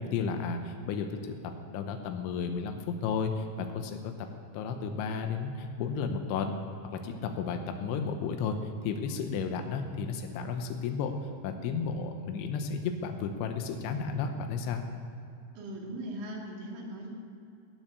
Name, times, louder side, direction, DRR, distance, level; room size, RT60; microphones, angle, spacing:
voice 1, 0.0-4.1 4.5-6.6 6.9-11.2 11.4-14.9, left 5 dB, 85° left, 5 dB, 3.3 m, -33 dB
voice 2, 15.5-17.1, right 1 dB, 75° right, -2 dB, 4.7 m, -39 dB
17.0 x 9.1 x 6.9 m, 2.7 s
omnidirectional pair, 5.3 m